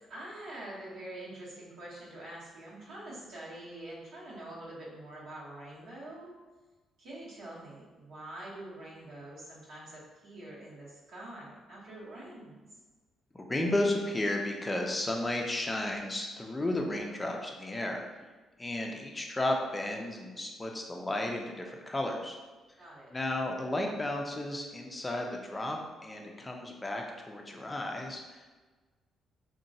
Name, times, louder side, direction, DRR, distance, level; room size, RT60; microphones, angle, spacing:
voice 1, 0.1-6.3 7.0-12.6 22.8-23.1, right 1 dB, 75° right, -8 dB, 0.9 m, -45 dB
voice 2, 13.3-18.0 18.6-22.4 23.1-28.6, left 1 dB, 20° left, 1 dB, 0.4 m, -33 dB
2.9 x 2.1 x 2.6 m, 1.3 s
cardioid pair, 90°, 0 cm